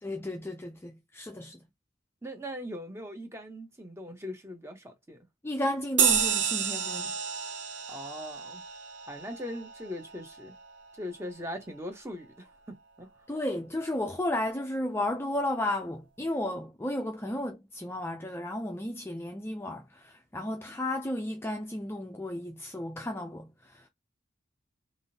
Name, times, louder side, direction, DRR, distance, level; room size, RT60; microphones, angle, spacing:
voice 1, 0.0-1.6 5.4-7.1 13.3-23.9, left 1 dB, 10° left, 0.4 m, -33 dB
voice 2, 2.2-5.2 7.9-8.6 9.1-10.5 11.0-13.1, equal, 15° right, 0.8 m, -40 dB
sound 1, 6.0-10.9, right 7 dB, 65° right, 0.7 m, -30 dB
3.5 x 2.5 x 2.7 m
head